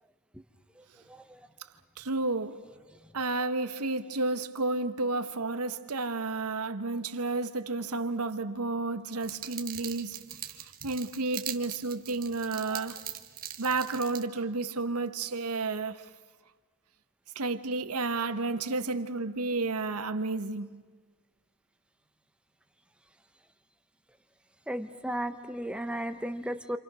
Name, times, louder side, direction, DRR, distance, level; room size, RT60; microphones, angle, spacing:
voice 1, 2.0-2.7 3.1-10.3 10.8-13.0 13.6-16.1 17.3-20.8, right 3 dB, 85° right, 1.2 m, -31 dB
sound 1, 9.2-14.2, right 10 dB, 40° right, 1.4 m, -41 dB
voice 2, 24.7-26.8, right 1 dB, 5° right, 1.0 m, -35 dB
29.0 x 27.5 x 6.2 m
head